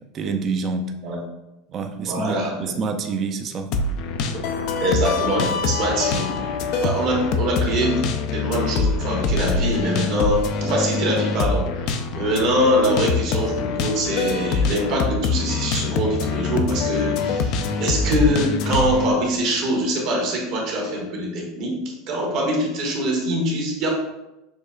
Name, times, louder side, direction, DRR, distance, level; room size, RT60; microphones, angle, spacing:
voice 1, 0.1-0.9 1.7-3.7, right 4 dB, 40° right, 6 dB, 0.5 m, -27 dB
voice 2, 2.0-2.6 4.8-6.3 6.7-8.0 8.3-11.7 12.1-21.8 22.1-23.9, equal, 60° right, -1 dB, 1.2 m, -23 dB
sound 1, 3.7-19.1, left 4 dB, 60° left, 0.3 m, -24 dB
6.3 x 2.3 x 2.2 m, 0.95 s
hypercardioid pair, 100°, 0 cm